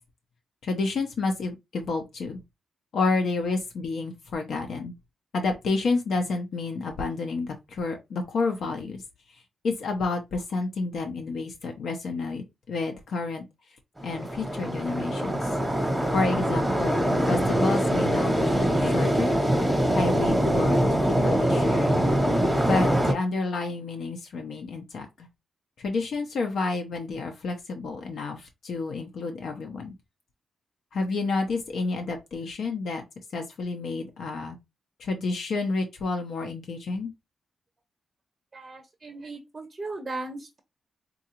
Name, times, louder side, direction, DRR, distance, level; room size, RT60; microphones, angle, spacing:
voice 1, 0.6-2.4 2.9-4.9 5.3-9.0 9.6-13.4 14.0-15.5 16.1-19.4 19.9-22.0 22.7-25.3 25.8-29.9 30.9-33.0 33.3-34.6 35.0-37.1, left 3 dB, 70° left, 0.6 m, -30 dB
sound 1, 14.0-23.1, equal, ahead, 0.9 m, -23 dB
voice 2, 38.5-40.6, right 2 dB, 25° right, 0.6 m, -37 dB
3.7 x 2.3 x 2.8 m
wide cardioid pair, 145°, 0 cm